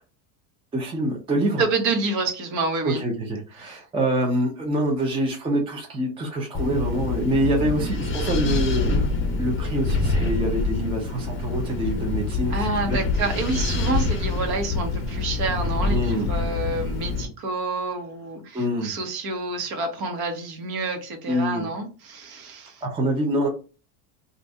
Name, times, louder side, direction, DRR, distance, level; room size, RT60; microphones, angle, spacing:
voice 1, 0.7-1.6 2.8-9.1 9.4-13.0 15.9-16.3 18.5-18.9 21.3-21.7 22.8-23.5, right 1 dB, 10° right, 0 dB, 0.5 m, -25 dB
voice 2, 1.6-3.0 3.6-3.8 12.5-22.8, right 3 dB, 50° right, 4 dB, 1.1 m, -28 dB
Wind, 6.5-17.3, left 3 dB, 25° left, 0.8 m, -26 dB
2.6 x 2.5 x 3.4 m, 0.35 s
supercardioid pair, 130°, 47 cm